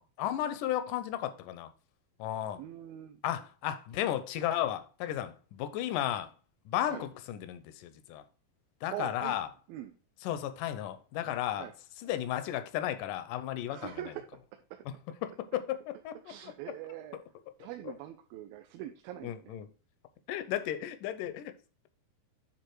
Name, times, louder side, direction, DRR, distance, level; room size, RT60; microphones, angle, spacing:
voice 1, 0.0-1.7 2.2-2.6 3.2-6.3 6.7-8.2 8.8-9.5 10.2-11.7 12.0-13.9 15.2-16.2 16.4-16.5 19.2-19.7 20.3-21.5, left 12 dB, 80° left, 2.0 m, -34 dB
voice 2, 2.6-3.2 6.9-7.1 8.9-9.4 9.7-10.0 11.6-11.7 13.7-14.3 14.7-14.8 16.2-17.2 17.6-19.6, right 12 dB, 80° right, 2.4 m, -42 dB
10.0 x 3.7 x 4.6 m
omnidirectional pair, 4.3 m